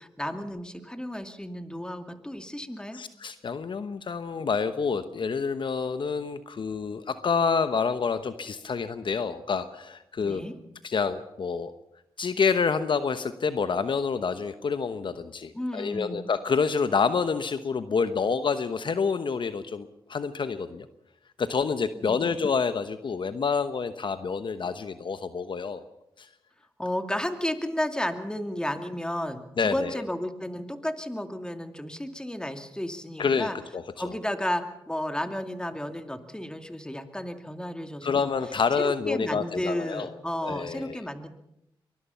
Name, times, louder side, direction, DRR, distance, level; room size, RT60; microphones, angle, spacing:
voice 1, 0.0-3.0 10.2-10.5 15.5-16.3 22.0-22.3 26.8-33.6 34.0-38.3 38.8-41.3, left 1 dB, 10° left, 7 dB, 2.4 m, -33 dB
voice 2, 2.9-10.4 10.8-11.7 12.2-20.9 21.4-25.8 26.2-26.3 29.6-30.0 33.2-34.1 38.0-40.1 40.4-41.0, left 5 dB, 60° left, 11 dB, 1.1 m, -28 dB
23.5 x 20.5 x 5.7 m, 0.81 s
supercardioid pair, 50°, 10 cm